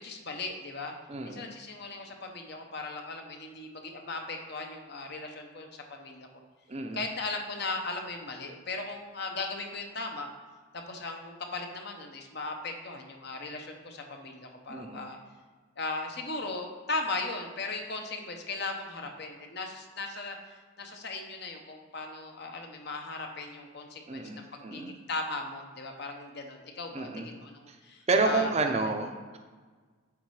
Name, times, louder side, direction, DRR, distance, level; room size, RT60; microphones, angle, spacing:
voice 1, 0.0-0.9 1.2-6.3 6.9-10.3 10.7-15.2 15.8-20.4 20.8-24.2 24.5-28.8, left 3 dB, 50° left, 3 dB, 0.9 m, -37 dB
voice 2, 1.1-1.5 6.7-7.0 14.7-15.1 24.1-24.9 26.9-27.3 27.7-27.8 28.1-29.4, right 3 dB, 30° right, 4 dB, 0.6 m, -30 dB
8.5 x 4.2 x 4.8 m, 1.4 s
head